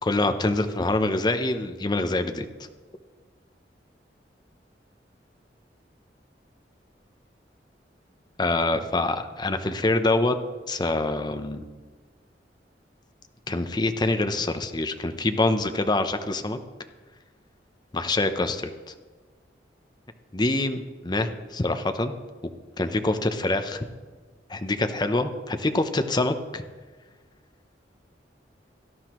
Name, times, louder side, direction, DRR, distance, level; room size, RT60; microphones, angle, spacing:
voice 1, 0.0-2.5 8.4-10.4 10.7-11.6 13.5-16.6 17.9-18.9 20.3-22.1 22.8-23.9 24.5-26.6, left 2 dB, 25° left, 8 dB, 0.7 m, -25 dB
17.0 x 12.0 x 3.1 m, 1.4 s
head